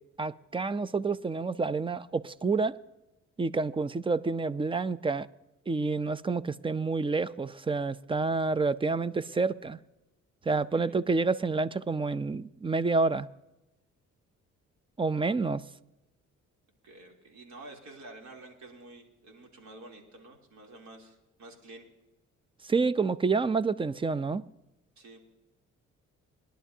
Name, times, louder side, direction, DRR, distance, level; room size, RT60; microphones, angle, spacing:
voice 1, 0.2-2.7 3.4-5.3 5.7-9.8 10.5-13.3 15.0-15.6 22.6-24.4, right 4 dB, 20° right, 0.4 m, -28 dB
voice 2, 16.8-21.8 25.0-25.2, right 2 dB, 70° right, 3.1 m, -49 dB
21.0 x 11.0 x 2.7 m
cardioid pair, 90°, 30 cm